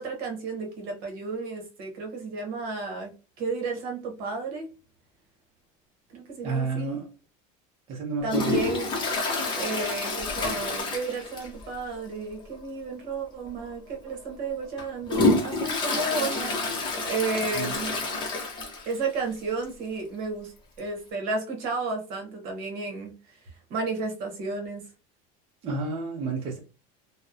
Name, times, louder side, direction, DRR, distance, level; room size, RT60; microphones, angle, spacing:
voice 1, 0.0-3.1 3.4-4.7 6.1-7.0 8.2-9.2 9.5-17.9 18.9-24.9, right 4 dB, 55° right, 0.9 m, -33 dB
voice 2, 6.4-7.1 7.9-8.5 17.5-17.7 25.6-26.6, right 4 dB, 30° right, 0.5 m, -30 dB
Toilet flush, 8.3-11.7 12.0-12.1 12.5-12.6 13.5-13.6 14.1-19.0 19.4-19.5 19.6-19.7 20.8-20.9, left 3 dB, 25° left, 0.6 m, -28 dB
2.8 x 2.0 x 2.4 m
cardioid pair, 150°, 18 cm